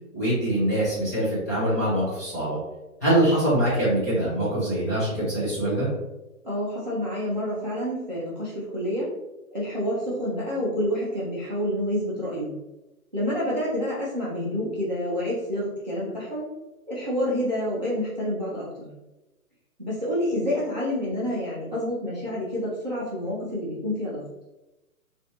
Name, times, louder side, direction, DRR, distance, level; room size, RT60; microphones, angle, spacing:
voice 1, 0.1-2.6 3.0-5.9, right 1 dB, 10° left, -12 dB, 0.6 m, -24 dB
voice 2, 6.4-9.1 9.5-12.5 13.1-16.5 16.9-18.9 19.8-24.2, equal, 35° right, -7 dB, 0.4 m, -28 dB
3.0 x 2.5 x 2.7 m, 1.0 s
hypercardioid pair, 160°, 45 cm